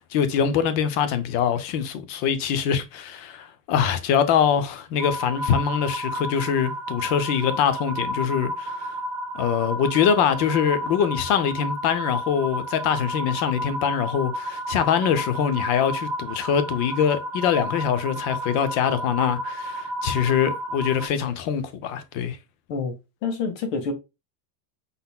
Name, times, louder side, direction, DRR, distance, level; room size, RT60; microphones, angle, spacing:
voice 1, 0.0-8.9 9.3-22.4, left 8 dB, 35° left, 0.6 m, -23 dB
sound 1, 5.0-21.1, equal, 5° right, 0.6 m, -32 dB
voice 2, 23.2-23.9, left 4 dB, 75° left, 1.8 m, -27 dB
5.5 x 4.0 x 2.2 m
supercardioid pair, 175°, 49 cm